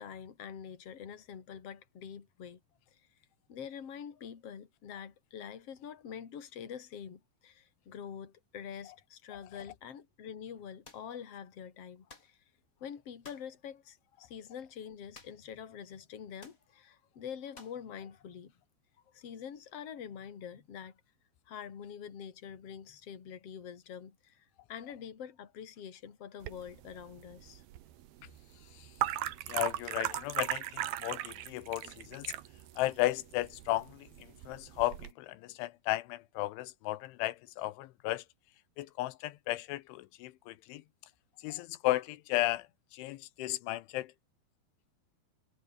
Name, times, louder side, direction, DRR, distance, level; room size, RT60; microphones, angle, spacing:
voice 1, 0.0-2.6 2.9-3.0 3.5-12.4 12.8-18.6 19.1-21.0 21.5-27.6, left 8 dB, 35° left, 3.2 m, -46 dB
sound 1, 10.8-11.1 12.1-12.4 13.2-13.5 15.1-15.5 15.8-15.9 16.4-16.7 17.5-17.8, left 3 dB, 20° left, 3.1 m, -54 dB
sound 2, 26.4-35.1, right 13 dB, 65° right, 2.8 m, -39 dB
voice 2, 29.5-32.3 32.8-38.2 38.8-40.8 41.4-42.7 42.9-44.1, left 17 dB, 90° left, 3.5 m, -34 dB
omnidirectional pair, 5.3 m